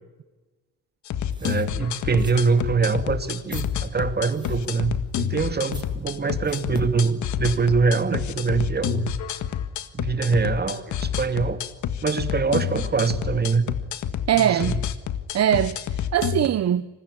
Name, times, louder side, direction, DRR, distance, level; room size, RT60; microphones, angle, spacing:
sound 1, 1.1-16.5, left 9 dB, 75° left, 1.8 m, -29 dB
sound 2, 1.3-7.8, right 2 dB, 15° right, 5.8 m, -48 dB
voice 1, 1.4-9.1 9.9-11.6 12.0-13.7 14.3-14.8, right 4 dB, 35° right, 2.8 m, -24 dB
voice 2, 14.3-14.7 15.3-16.9, right 10 dB, 55° right, 0.9 m, -21 dB
27.5 x 21.0 x 9.8 m
cardioid pair, 90°, 30 cm